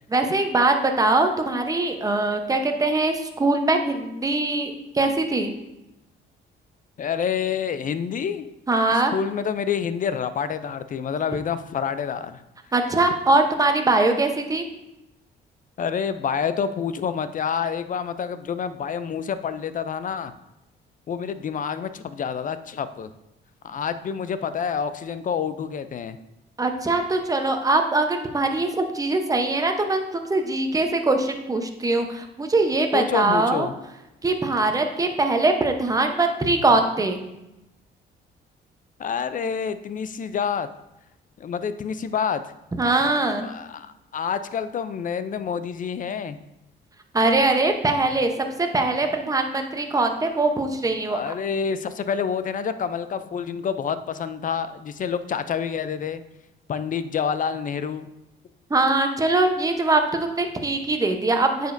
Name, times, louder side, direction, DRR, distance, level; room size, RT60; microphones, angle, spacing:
voice 1, 0.1-5.5 8.7-9.1 12.7-14.7 26.6-33.7 34.2-37.2 42.8-43.5 47.1-51.2 58.7-61.7, right 2 dB, 15° right, 5 dB, 0.8 m, -22 dB
voice 2, 7.0-8.5 8.9-12.4 15.8-20.3 21.1-23.1 23.6-26.2 32.9-33.7 39.0-40.7 41.4-42.4 43.4-46.4 51.1-56.2 56.7-58.1, left 7 dB, 40° left, 12 dB, 0.4 m, -28 dB
9.0 x 5.1 x 2.6 m, 0.92 s
cardioid pair, 90°, 20 cm